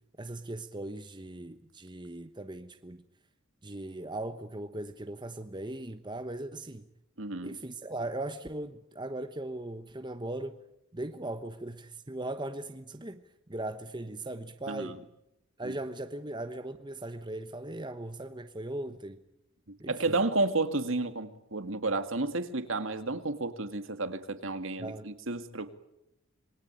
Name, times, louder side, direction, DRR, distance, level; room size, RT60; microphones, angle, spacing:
voice 1, 0.2-3.0 3.6-6.9 7.4-10.6 10.9-13.2 13.5-15.0 15.6-19.2 19.8-20.2 24.8-25.1, right 1 dB, 20° right, 1.1 m, -39 dB
voice 2, 7.2-7.6 14.7-14.9 15.6-15.7 19.9-25.7, right 2 dB, 65° right, 2.2 m, -31 dB
27.0 x 22.0 x 9.1 m
head